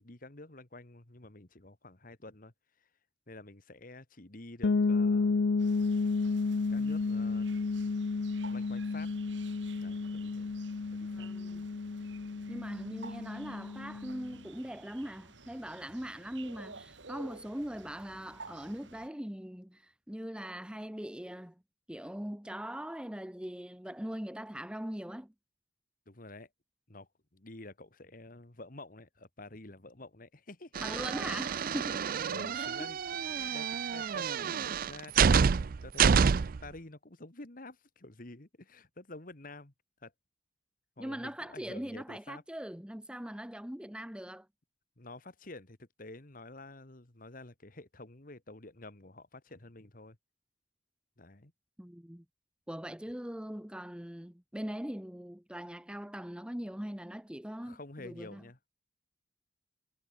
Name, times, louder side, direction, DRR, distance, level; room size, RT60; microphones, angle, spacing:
voice 1, 0.0-2.5 3.3-5.4 6.7-7.5 8.5-9.1 9.8-10.6 10.9-11.3 26.1-26.5 26.9-30.7 31.2-31.3 32.3-35.5 35.8-36.3 36.6-39.7 40.0-40.1 41.0-42.4 45.0-50.2 51.2-51.5 57.6-58.6, left 2 dB, 50° left, 2.0 m, -49 dB
sound 1, 4.6-14.3, left 4 dB, 75° left, 0.5 m, -32 dB
sound 2, 5.6-19.1, right 4 dB, 90° right, 4.1 m, -53 dB
voice 2, 11.1-11.6 12.5-21.6 21.9-25.3 30.8-32.0 32.5-32.9 33.4-33.5 41.0-44.5 51.8-52.2 52.7-58.4, equal, 5° right, 0.8 m, -41 dB
sound 3, 30.7-36.7, right 6 dB, 50° right, 0.4 m, -28 dB
head